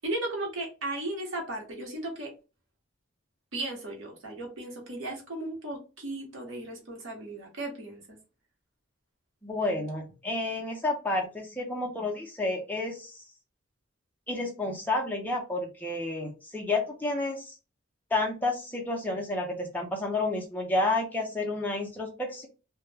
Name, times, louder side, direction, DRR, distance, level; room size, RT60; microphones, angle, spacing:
voice 1, 0.0-2.3 3.5-8.2, right 2 dB, 70° right, 0 dB, 0.9 m, -36 dB
voice 2, 9.4-13.3 14.3-17.6 18.1-22.5, left 2 dB, 10° left, 0 dB, 0.5 m, -30 dB
2.2 x 2.0 x 3.2 m, 0.32 s
head